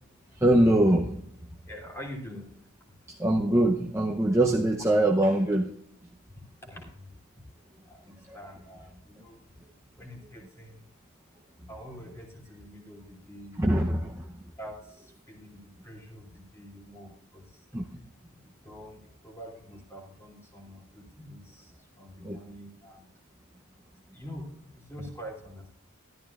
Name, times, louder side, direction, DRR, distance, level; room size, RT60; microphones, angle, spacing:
voice 1, 0.4-1.1 3.2-5.7 13.6-14.0 17.7-17.8 22.3-22.4, right 1 dB, 15° right, 0 dB, 0.7 m, -22 dB
voice 2, 1.7-2.7 6.4-7.1 7.8-9.4 9.9-10.9 11.7-13.6 14.6-17.7 18.3-23.1 24.1-25.7, equal, 10° left, -1 dB, 2.8 m, -45 dB
13.5 x 12.5 x 2.4 m, 0.69 s
head